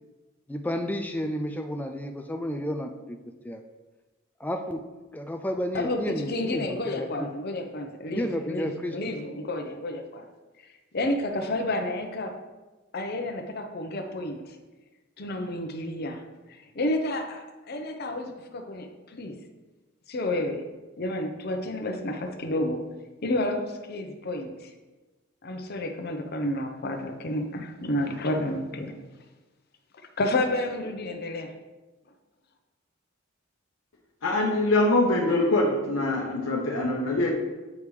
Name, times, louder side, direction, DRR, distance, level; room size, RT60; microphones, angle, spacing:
voice 1, 0.5-2.9 3.4-3.6 4.4-4.8 5.1-7.3 8.1-9.1, equal, 10° left, 4 dB, 0.3 m, -31 dB
voice 2, 5.7-10.3 10.9-12.3 12.9-14.6 15.2-16.2 16.7-19.4 20.1-20.6 21.0-22.8 23.2-24.7 25.4-28.9 30.2-31.5, left 1 dB, 50° left, 5 dB, 0.8 m, -30 dB
voice 3, 34.2-37.3, left 2 dB, 85° left, -1 dB, 0.8 m, -23 dB
8.3 x 5.2 x 3.2 m, 1.2 s
head